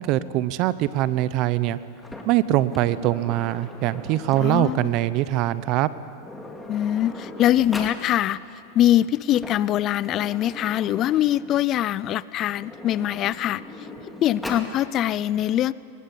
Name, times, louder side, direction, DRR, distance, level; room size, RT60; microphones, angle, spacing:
voice 1, 0.0-1.8 2.2-5.9, right 14 dB, 50° right, 16 dB, 0.8 m, -23 dB
Sliding door, 2.0-4.8 5.8-5.9 6.2-8.0 9.1-11.7 12.4-14.7, left 2 dB, 5° left, 2.5 m, -39 dB
voice 2, 4.4-4.9 6.7-8.4 8.7-13.6 14.2-15.7, left 12 dB, 40° left, 20 dB, 0.5 m, -23 dB
19.5 x 19.5 x 8.6 m, 2.7 s
hypercardioid pair, 115°, 0 cm